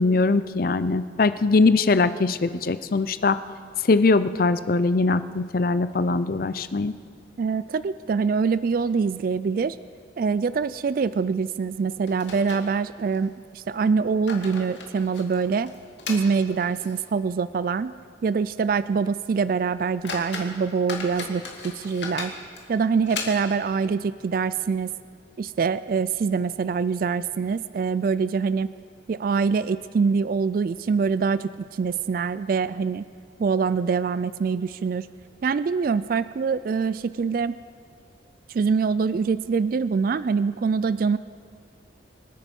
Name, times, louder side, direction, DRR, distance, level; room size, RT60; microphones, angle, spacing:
voice 1, 0.0-3.4 3.9-6.9, left 3 dB, 50° left, 13 dB, 0.5 m, -21 dB
sound 1, 5.3-6.3 6.6-6.7 7.1-7.2 7.8-8.3 8.6-8.7 9.3-9.5 9.8-10.0 11.3-11.4 12.1-13.3 13.9-17.1 17.5-17.6 18.1-18.2 18.7-18.8 19.4-19.5 19.8-23.7, left 4 dB, 70° left, 2.4 m, -38 dB
voice 2, 7.4-9.8 10.2-15.7 16.1-17.9 18.2-22.3 22.7-24.9 25.4-28.7 29.1-33.0 33.4-35.1 35.4-37.6 38.5-41.2, right 5 dB, 50° right, 15 dB, 0.3 m, -24 dB
26.5 x 9.4 x 5.3 m, 2.4 s
head